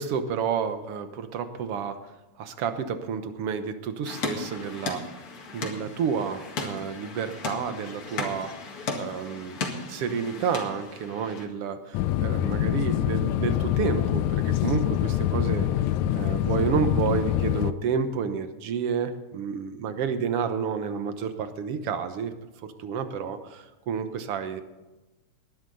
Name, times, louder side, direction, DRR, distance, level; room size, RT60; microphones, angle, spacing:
voice 1, 0.0-2.0 2.4-5.0 5.5-8.5 9.0-9.6 9.9-15.7 16.1-22.3 22.6-24.6, right 6 dB, 65° right, 9 dB, 1.7 m, -30 dB
sound 1, 4.1-11.4, left 3 dB, 50° left, 2.6 m, -36 dB
sound 2, 11.9-17.7, left 12 dB, 80° left, 1.9 m, -25 dB
19.0 x 11.0 x 4.0 m, 1.1 s
omnidirectional pair, 3.4 m